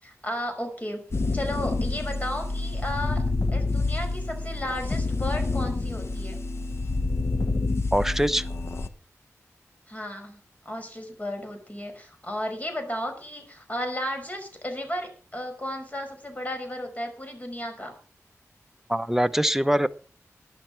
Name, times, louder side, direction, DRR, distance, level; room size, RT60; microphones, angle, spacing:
voice 1, 0.0-1.1 1.3-3.2 3.5-6.4 9.9-17.9, left 1 dB, 25° left, 5 dB, 5.4 m, -34 dB
sound 1, 1.1-8.9, left 3 dB, 50° left, 1.2 m, -28 dB
voice 2, 7.9-8.5 18.9-19.9, equal, 5° right, 11 dB, 0.9 m, -23 dB
12.5 x 11.0 x 5.9 m, 0.39 s
wide cardioid pair, 65°, 6 cm